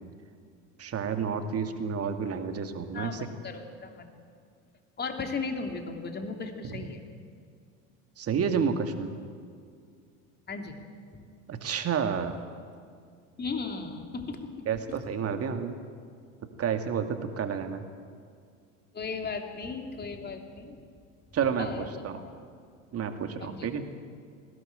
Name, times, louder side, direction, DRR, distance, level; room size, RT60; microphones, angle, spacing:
voice 1, 0.8-3.3 6.6-6.8 8.2-9.1 11.5-12.4 14.7-15.8 16.6-17.8 21.3-22.2 22.9-23.9, right 6 dB, 35° right, 6 dB, 2.3 m, -30 dB
voice 2, 2.9-4.1 5.0-7.0 10.5-10.7 11.1-11.2 13.4-14.5 18.9-20.9 21.4-22.3 23.4-23.7, left 4 dB, 25° left, 4 dB, 3.0 m, -36 dB
20.0 x 17.0 x 9.0 m, 2.2 s
hypercardioid pair, 75°, 40 cm